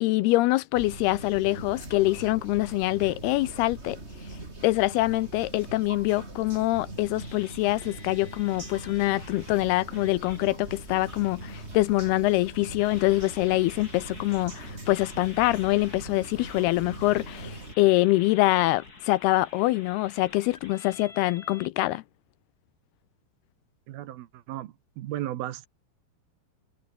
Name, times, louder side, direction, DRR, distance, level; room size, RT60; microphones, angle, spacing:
voice 1, 0.0-4.0 4.6-22.0, left 19 dB, 80° left, 2.5 m, -25 dB
sound 1, 0.7-17.7, right 2 dB, 15° right, 4.4 m, -42 dB
sound 2, 7.2-10.4 11.0-12.4 12.8-21.7, left 3 dB, 25° left, 3.5 m, -49 dB
voice 2, 23.9-25.7, right 13 dB, 70° right, 2.8 m, -35 dB
omnidirectional pair, 4.9 m